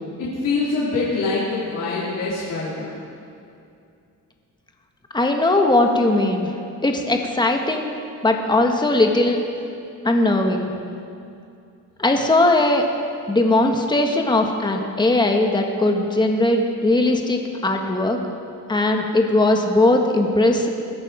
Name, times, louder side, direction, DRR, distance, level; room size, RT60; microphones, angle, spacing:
voice 1, 0.2-3.0, left 3 dB, 70° left, -9 dB, 3.8 m, -24 dB
voice 2, 5.1-6.5 6.8-7.9 8.2-9.4 10.0-10.7 12.0-12.8 13.3-18.2 18.7-20.7, left 2 dB, 15° left, 3 dB, 1.5 m, -19 dB
21.0 x 12.0 x 5.1 m, 2.5 s
cardioid pair, 110°, 34 cm